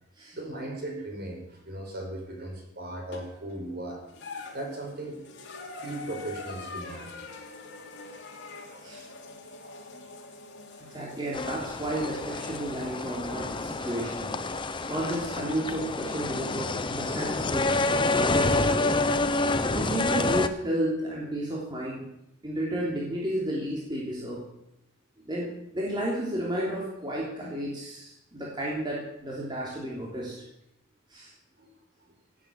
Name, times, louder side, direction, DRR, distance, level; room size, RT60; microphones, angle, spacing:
voice 1, 0.3-4.0 4.5-5.2 5.6-7.1 8.7-8.9 9.6-9.9 10.8-11.0 18.4-18.9 31.6-31.7, right 1 dB, 50° right, 0 dB, 5.4 m, -38 dB
sound 1, 3.1-3.6 4.1-15.3 16.4-16.5 17.8-17.9, left 3 dB, 60° left, 2.8 m, -45 dB
voice 2, 10.9-14.3 14.9-19.0 19.7-22.1 22.4-24.4 25.2-25.5 25.7-30.3 31.1-31.3, right 1 dB, 20° right, -5 dB, 3.0 m, -32 dB
sound 2, 11.3-20.5, left 2 dB, 25° left, 0.7 m, -28 dB
16.5 x 8.5 x 7.5 m, 0.83 s
head